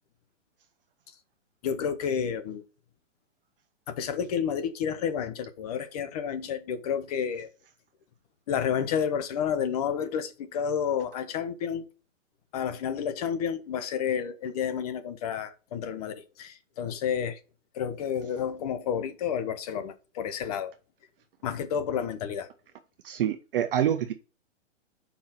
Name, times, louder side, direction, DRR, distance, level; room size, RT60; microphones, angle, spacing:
voice 1, 1.6-2.6 3.9-7.5 8.5-11.8 12.5-17.4 17.7-20.7 21.4-22.5, left 7 dB, 30° left, 0.7 m, -30 dB
voice 2, 23.0-24.1, right 10 dB, 45° right, 0.7 m, -26 dB
5.0 x 4.7 x 5.7 m
hypercardioid pair, 155°, 37 cm